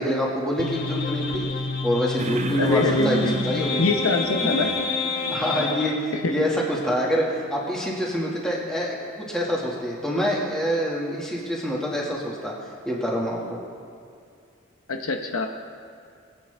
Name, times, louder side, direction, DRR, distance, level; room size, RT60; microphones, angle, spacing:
voice 1, 0.0-1.5 1.8-3.8 5.3-12.5 12.9-13.6, equal, 5° left, -4 dB, 1.9 m, -26 dB
sound 1, 0.6-6.0, left 4 dB, 50° left, 1.0 m, -28 dB
sound 2, 2.2-5.8, right 2 dB, 30° right, 0.5 m, -31 dB
voice 2, 2.6-3.3 3.8-4.7 6.2-6.3 14.9-15.5, left 3 dB, 85° left, 5 dB, 0.9 m, -24 dB
21.5 x 8.5 x 3.5 m, 2.4 s
head